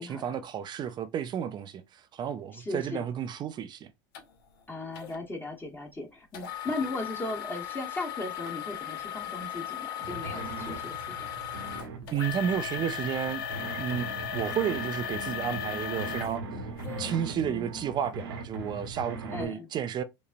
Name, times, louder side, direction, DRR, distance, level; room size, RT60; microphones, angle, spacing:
voice 1, 0.0-3.9 12.1-13.4 13.8-14.1 14.3-16.4 16.9-20.0, right 9 dB, 35° right, 0.4 m, -32 dB
voice 2, 2.5-3.1 4.7-11.3 17.3-17.7 19.3-19.7, left 2 dB, 15° left, 1.1 m, -37 dB
sound 1, 4.1-4.2 5.0-5.2 6.3-17.2 17.8-17.9 18.5-18.6, left 9 dB, 75° left, 0.8 m, -37 dB
sound 2, 10.0-19.5, right 2 dB, 85° right, 1.1 m, -40 dB
5.2 x 2.1 x 2.5 m
hypercardioid pair, 95°, 12 cm